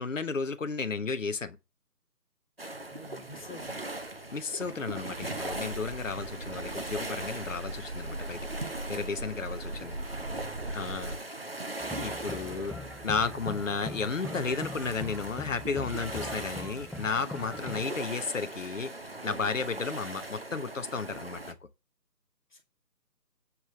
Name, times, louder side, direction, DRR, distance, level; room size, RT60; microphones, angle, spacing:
voice 1, 0.0-1.6 4.3-10.0 10.7-11.2 12.0-12.8 13.0-18.9 19.2-21.6, left 4 dB, 50° left, 0.8 m, -33 dB
sound 1, 2.6-21.5, right 2 dB, 35° right, 0.8 m, -40 dB
voice 2, 2.9-3.9 9.7-9.9 11.0-11.6 22.5-22.6, left 2 dB, 30° left, 2.0 m, -50 dB
sound 2, 5.5-11.2, right 1 dB, 85° right, 2.1 m, -40 dB
sound 3, 11.8-17.9, left 2 dB, ahead, 0.4 m, -42 dB
9.5 x 3.7 x 6.7 m
figure-of-eight pair, 165°, 50 cm